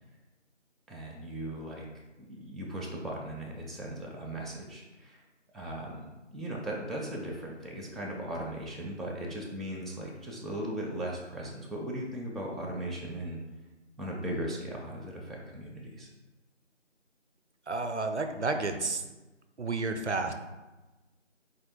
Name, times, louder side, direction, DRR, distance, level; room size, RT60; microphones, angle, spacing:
voice 1, 0.9-1.8 2.3-5.2 5.5-6.0 6.3-13.4 14.0-16.1, right 1 dB, ahead, -3 dB, 0.4 m, -38 dB
voice 2, 17.7-19.0 19.6-20.3, right 3 dB, 65° right, 7 dB, 0.5 m, -31 dB
4.2 x 2.6 x 4.2 m, 1.1 s
figure-of-eight pair, 175°, 37 cm